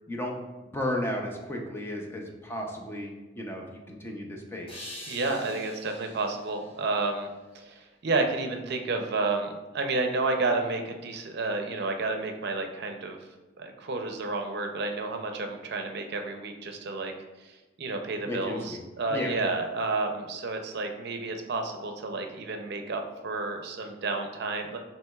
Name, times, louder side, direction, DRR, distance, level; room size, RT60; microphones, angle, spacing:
voice 1, 0.1-0.4 0.7-4.9 18.3-18.8 19.1-19.4, left 1 dB, 15° left, 1 dB, 0.5 m, -34 dB
sound 1, 4.7-7.8, left 1 dB, 30° left, 1.1 m, -46 dB
voice 2, 5.1-7.3 7.5-13.2 13.6-17.1 17.4-24.8, right 3 dB, 60° right, 5 dB, 0.5 m, -31 dB
7.4 x 3.1 x 2.3 m, 1.1 s
head